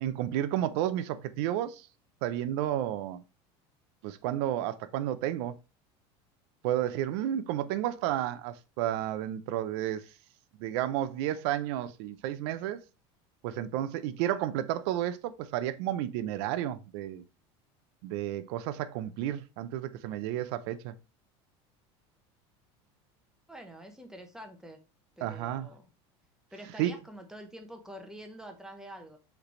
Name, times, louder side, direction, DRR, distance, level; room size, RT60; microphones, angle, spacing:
voice 1, 0.0-1.9 2.2-3.2 4.0-5.5 6.6-10.1 10.6-12.8 13.4-17.2 18.0-20.9 25.2-25.7 26.8-26.9, right 12 dB, 75° right, 0.5 m, -32 dB
voice 2, 23.5-24.8 25.2-25.8 26.5-29.2, right 1 dB, 5° right, 0.9 m, -46 dB
4.8 x 3.3 x 3.1 m
supercardioid pair, 120°, 14 cm